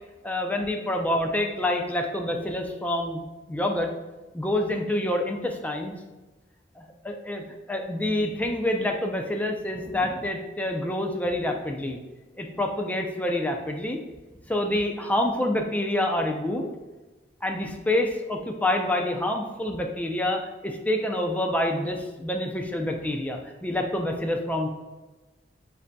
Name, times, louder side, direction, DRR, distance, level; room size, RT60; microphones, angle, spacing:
voice 1, 0.2-3.2 3.5-3.9 4.3-5.9 6.8-7.4 7.7-12.0 12.4-14.0 14.5-16.7 17.4-24.7, left 1 dB, 10° left, 3 dB, 0.4 m, -27 dB
7.5 x 2.7 x 2.2 m, 1.2 s
head